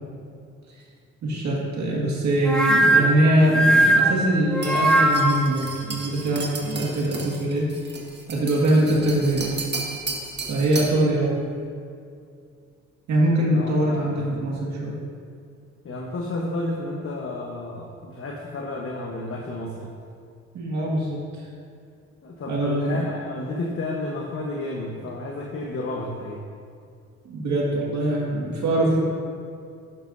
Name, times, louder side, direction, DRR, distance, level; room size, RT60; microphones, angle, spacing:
voice 1, 1.2-7.7 8.3-9.6 10.5-11.4 13.1-14.9 20.5-21.5 22.5-23.1 27.3-29.0, right 1 dB, 70° right, -4 dB, 2.0 m, -22 dB
sound 1, 2.4-5.5, right 1 dB, 5° left, 0.9 m, -19 dB
sound 2, 4.6-11.0, right 3 dB, 35° right, 1.7 m, -34 dB
voice 2, 13.5-14.4 15.8-19.9 22.2-26.4, left 2 dB, 45° left, 0 dB, 1.1 m, -32 dB
11.5 x 10.5 x 2.7 m, 2.4 s
cardioid pair, 90°, 30 cm